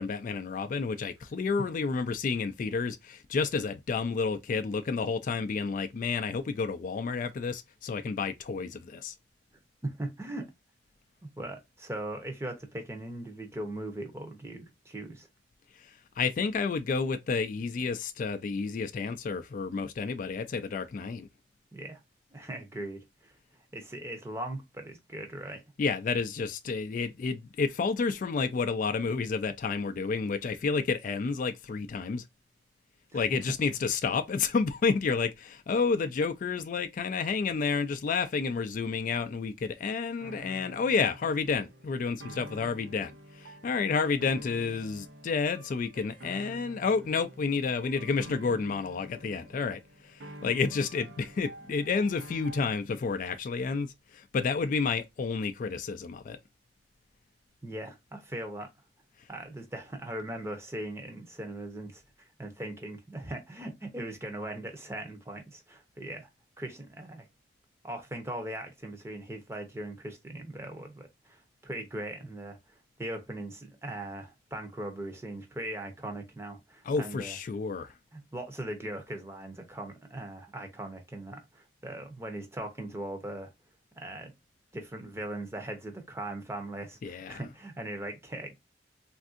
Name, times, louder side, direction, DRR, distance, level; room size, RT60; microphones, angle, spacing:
voice 1, 0.0-9.1 15.8-21.3 25.8-32.2 33.1-56.4 76.8-77.9 87.0-87.4, left 5 dB, 45° left, 0.3 m, -30 dB
voice 2, 9.8-10.5 11.4-15.3 21.7-22.0 22.3-23.3 23.7-25.6 33.1-33.3 57.6-58.7 59.3-66.3 66.6-67.3 67.8-77.4 78.1-83.5 84.0-84.3 84.7-88.6, right 1 dB, 15° right, 0.7 m, -39 dB
sound 1, 40.2-52.7, right 1 dB, 85° right, 0.7 m, -48 dB
3.4 x 2.5 x 2.4 m
head